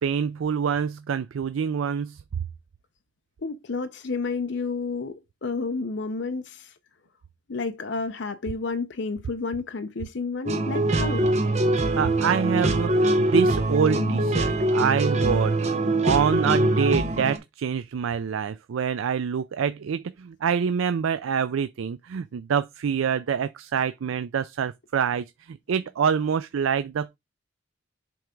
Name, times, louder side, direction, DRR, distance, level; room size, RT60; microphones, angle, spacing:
voice 1, 0.0-2.2 11.9-27.2, right 7 dB, 85° right, 0.4 m, -26 dB
voice 2, 3.4-6.7 7.5-11.3, left 4 dB, 60° left, 0.6 m, -31 dB
sound 1, 10.5-17.4, right 1 dB, 35° right, 0.9 m, -23 dB
7.7 x 3.4 x 5.1 m
head